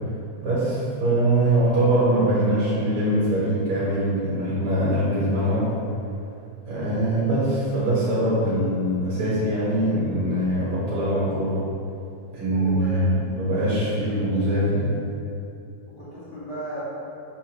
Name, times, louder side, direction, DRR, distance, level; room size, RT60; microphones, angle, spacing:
voice 1, 0.4-5.7 6.7-11.6 12.3-15.0, right 1 dB, 50° right, -10 dB, 1.9 m, -22 dB
voice 2, 12.5-13.3 15.9-17.0, right 1 dB, 40° left, -11 dB, 1.8 m, -35 dB
6.9 x 4.9 x 3.0 m, 2.6 s
omnidirectional pair, 3.4 m